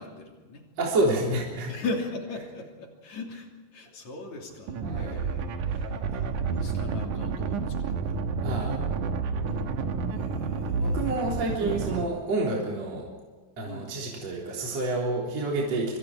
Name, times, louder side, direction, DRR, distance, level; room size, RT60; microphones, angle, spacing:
voice 1, 0.0-0.6 1.7-8.2 9.4-11.0 13.6-13.9, left 3 dB, 40° left, 1 dB, 3.9 m, -39 dB
voice 2, 0.8-1.7 4.8-5.2 8.4-8.9 10.8-13.1 13.6-16.0, right 2 dB, 35° right, -2 dB, 4.3 m, -28 dB
sound 1, 4.7-12.0, right 5 dB, 70° right, 1.9 m, -30 dB
25.5 x 25.0 x 5.0 m, 1.4 s
omnidirectional pair, 5.5 m